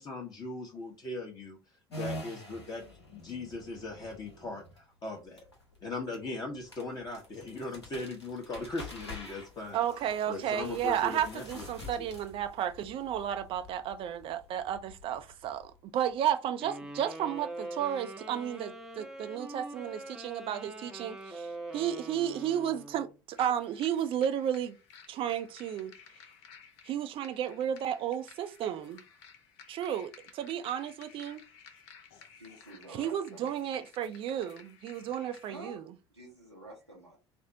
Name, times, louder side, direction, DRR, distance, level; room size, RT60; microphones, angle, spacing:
voice 1, 0.0-1.6 1.9-2.8 3.1-4.6 5.0-5.4 5.8-9.8 10.3-12.1, left 2 dB, 30° left, 0.9 m, -39 dB
sound 1, 1.9-16.1, left 1 dB, 85° left, 0.8 m, -47 dB
voice 2, 9.7-21.5 21.7-24.8 25.1-25.9 26.9-29.0 29.7-31.4 32.9-35.8, right 10 dB, 40° right, 0.4 m, -33 dB
sound 2, 16.6-23.1, right 1 dB, 5° right, 0.7 m, -43 dB
sound 3, 23.3-35.6, left 6 dB, 60° left, 0.6 m, -56 dB
voice 3, 32.4-33.6 35.5-35.8 36.1-37.2, right 1 dB, 90° right, 0.9 m, -49 dB
4.2 x 2.0 x 2.7 m
figure-of-eight pair, 65°, 14 cm